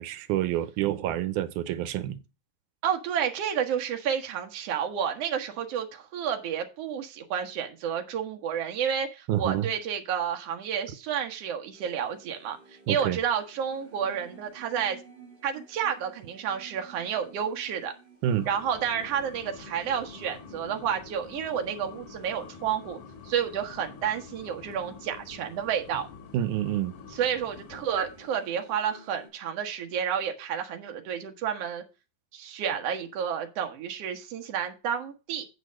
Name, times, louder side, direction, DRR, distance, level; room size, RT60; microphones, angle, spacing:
voice 1, 0.0-2.2 9.3-9.7 12.9-13.2 18.2-18.5 26.3-26.9, right 12 dB, 90° right, 2.3 m, -28 dB
voice 2, 2.8-15.0 15.4-17.9 18.5-23.0 23.3-26.1 27.1-31.8 32.3-35.5, right 8 dB, 60° right, 2.2 m, -30 dB
sound 1, 11.7-29.3, right 1 dB, 20° right, 2.2 m, -53 dB
sound 2, 18.2-28.3, left 6 dB, 75° left, 2.7 m, -48 dB
8.5 x 5.0 x 6.3 m
omnidirectional pair, 3.5 m